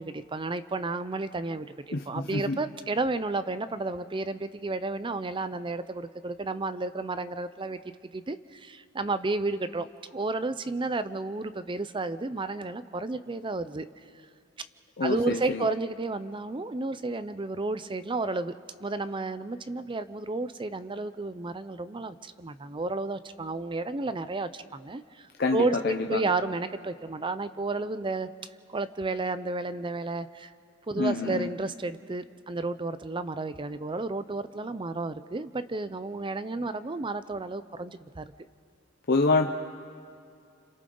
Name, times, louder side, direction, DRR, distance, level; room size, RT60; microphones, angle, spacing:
voice 1, 0.0-7.8 8.1-13.9 15.0-18.5 18.8-28.3 28.7-30.5 30.9-38.3, right 3 dB, 25° right, 13 dB, 0.6 m, -32 dB
voice 2, 1.9-2.7 15.0-15.7 25.4-26.3 31.0-31.5 39.1-39.5, left 3 dB, 50° left, 2 dB, 0.8 m, -27 dB
30.0 x 26.5 x 3.9 m, 2.4 s
head